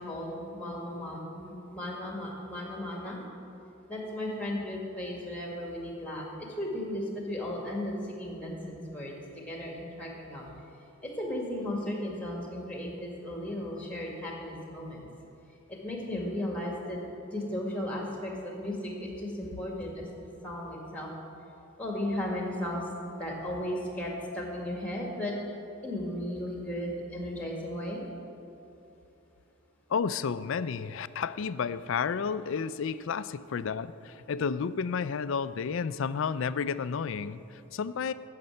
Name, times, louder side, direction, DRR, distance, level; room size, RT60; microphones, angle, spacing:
voice 1, 0.0-3.2 3.9-9.2 9.5-10.5 11.0-15.1 15.7-17.0 17.3-20.1 20.4-21.1 21.8-22.8 23.2-25.3 25.8-28.0, left 1 dB, 5° left, -1 dB, 1.8 m, -35 dB
voice 2, 29.9-38.1, left 6 dB, 60° left, 15 dB, 0.4 m, -31 dB
9.4 x 6.7 x 8.8 m, 2.9 s
head